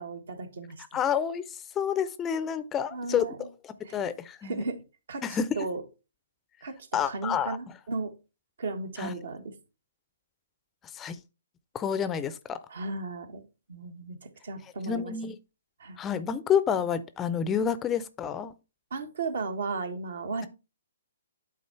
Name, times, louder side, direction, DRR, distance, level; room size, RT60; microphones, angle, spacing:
voice 1, 0.0-0.8 2.9-3.5 3.8-4.0 4.4-4.8 5.1-5.8 6.6-8.1 8.6-9.4 12.7-13.4 13.7-15.1 15.8-16.0 18.9-20.5, right 3 dB, 70° right, 1.4 m, -35 dB
voice 2, 0.9-1.5 1.8-4.6 5.2-5.5 6.9-7.6 9.0-9.1 10.9-11.2 11.7-12.6 14.9-15.4 16.0-18.5, left 8 dB, 15° left, 0.4 m, -29 dB
8.5 x 3.7 x 4.5 m
hypercardioid pair, 135°, 0 cm